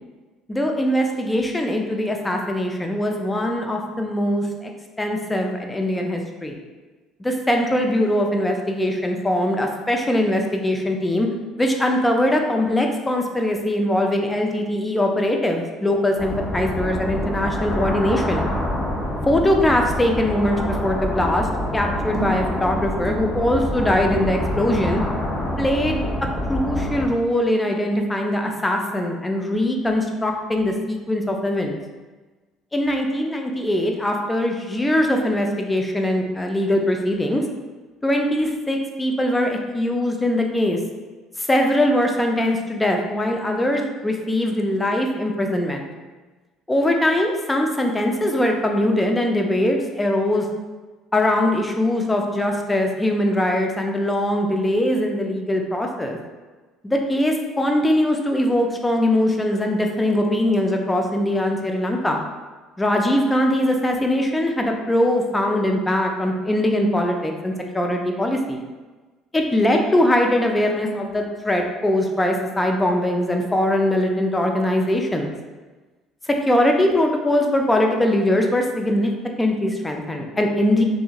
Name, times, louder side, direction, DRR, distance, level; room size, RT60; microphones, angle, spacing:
voice 1, 0.5-4.7 5.0-6.6 7.2-11.3 11.6-18.5 19.3-21.5 21.7-25.0 25.6-26.0 26.5-31.8 32.7-37.4 38.0-40.8 41.4-45.9 46.7-50.5 51.1-56.2 56.8-62.2 62.8-68.6 69.3-75.3 76.5-79.1 79.4-80.8, left 1 dB, 15° left, 2 dB, 0.4 m, -21 dB
sound 1, 16.2-27.1, left 1 dB, 50° left, 1.1 m, -26 dB
sound 2, 22.0-22.5, right 2 dB, 40° right, 0.6 m, -30 dB
2.7 x 2.5 x 2.3 m, 1.3 s
hypercardioid pair, 70°, 0 cm